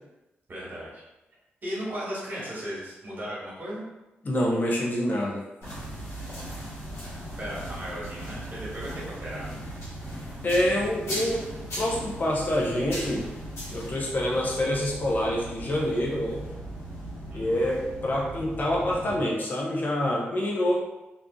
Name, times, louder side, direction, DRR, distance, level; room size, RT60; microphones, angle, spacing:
voice 1, 0.5-1.0 1.6-3.9 6.6-7.1 7.4-9.6 17.3-17.5, equal, 50° right, -6 dB, 1.2 m, -36 dB
voice 2, 4.2-5.4 10.4-11.5 11.8-13.3 13.7-16.4 17.3-20.7, left 1 dB, 45° left, -3 dB, 0.7 m, -26 dB
sound 1, 5.6-19.2, equal, 80° left, 1.1 m, -38 dB
2.5 x 2.5 x 2.3 m, 0.98 s
cardioid pair, 75°, 4 cm